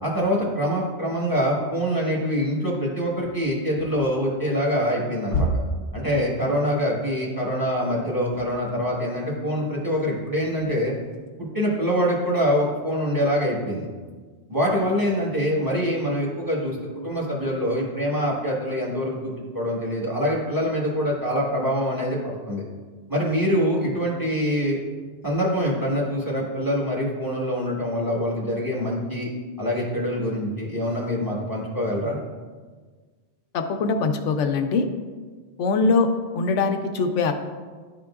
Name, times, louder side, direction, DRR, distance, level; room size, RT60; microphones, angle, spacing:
voice 1, 0.0-5.5 5.9-10.9 11.5-13.9 14.5-22.6 23.1-24.8 25.2-29.3 29.6-32.2, equal, 20° right, -4 dB, 1.2 m, -25 dB
sound 1, 3.8-4.1 4.5-4.8 5.3-6.8 8.1-9.2 9.9-11.3, equal, 60° left, 0.6 m, -31 dB
voice 2, 33.5-34.9 35.6-36.1 36.3-37.3, left 4 dB, 90° left, 6 dB, 0.9 m, -22 dB
10.5 x 3.7 x 2.3 m, 1.5 s
omnidirectional pair, 1.2 m